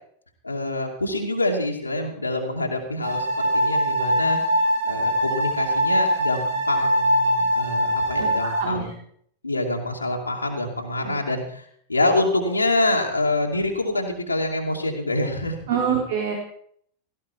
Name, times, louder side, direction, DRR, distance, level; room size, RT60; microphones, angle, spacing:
voice 1, 0.4-8.9 9.4-16.0, left 2 dB, 80° left, 0 dB, 2.6 m, -26 dB
sound 1, 3.0-8.6, equal, 70° right, 5.6 m, -22 dB
voice 2, 8.2-8.9 11.0-11.2 15.7-16.4, right 7 dB, 55° right, 1 dB, 3.5 m, -26 dB
17.0 x 15.5 x 4.7 m, 0.63 s
figure-of-eight pair, 90°, 0 cm